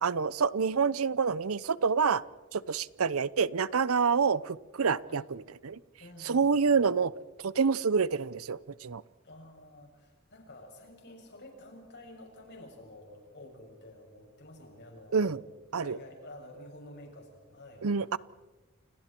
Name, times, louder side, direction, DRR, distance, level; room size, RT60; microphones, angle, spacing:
voice 1, 0.0-2.2 2.5-5.8 6.3-7.1 7.4-9.0 15.1-15.4 15.7-16.0 17.8-18.2, right 5 dB, 85° right, 19 dB, 0.7 m, -27 dB
voice 2, 6.0-6.8 9.2-15.3 15.8-17.9, left 1 dB, 55° left, 1 dB, 7.2 m, -50 dB
29.5 x 29.0 x 4.5 m, 1.2 s
head